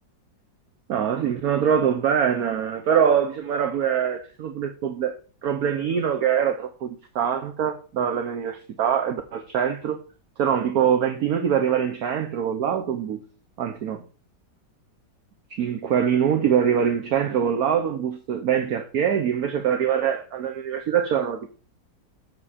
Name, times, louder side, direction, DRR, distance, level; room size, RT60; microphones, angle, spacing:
voice 1, 0.9-5.1 5.4-10.0 10.4-13.2 13.6-14.0 15.6-21.5, right 8 dB, 60° right, 1.2 m, -23 dB
7.2 x 6.9 x 4.2 m
omnidirectional pair, 2.0 m